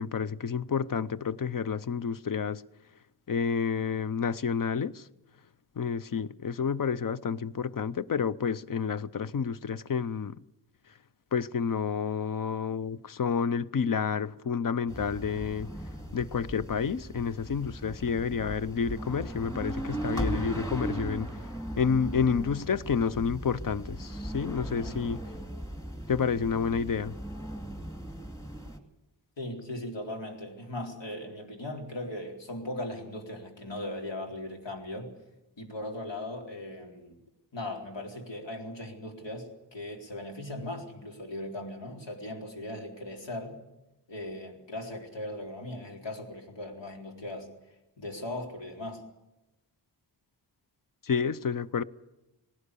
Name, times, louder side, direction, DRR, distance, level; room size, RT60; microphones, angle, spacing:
voice 1, 0.0-2.6 3.3-5.1 5.8-10.3 11.3-15.7 16.1-21.3 21.8-25.2 26.1-27.1 51.0-51.8, left 6 dB, 50° left, 0.7 m, -29 dB
sound 1, 14.9-28.8, right 1 dB, 10° left, 2.5 m, -38 dB
voice 2, 29.4-35.1 35.6-37.2 37.5-43.6 44.1-47.5 48.0-49.0, left 1 dB, 90° left, 4.1 m, -38 dB
19.0 x 17.5 x 8.3 m
wide cardioid pair, 125°, 42 cm